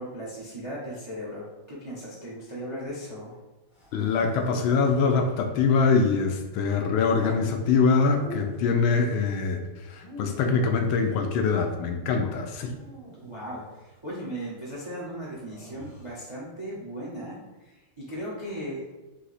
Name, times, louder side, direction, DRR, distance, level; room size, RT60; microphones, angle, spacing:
voice 1, 0.0-3.4 13.2-18.9, equal, 40° right, -6 dB, 0.4 m, -37 dB
sound 1, 3.7-5.7 7.0-7.5 8.1-8.8 9.8-11.2 12.7-13.9 15.5-16.2, equal, 25° left, 0.7 m, -45 dB
voice 2, 3.9-9.6 9.9-12.7, left 4 dB, 80° left, 4 dB, 1.3 m, -23 dB
4.1 x 2.8 x 4.0 m, 1.1 s
omnidirectional pair, 2.3 m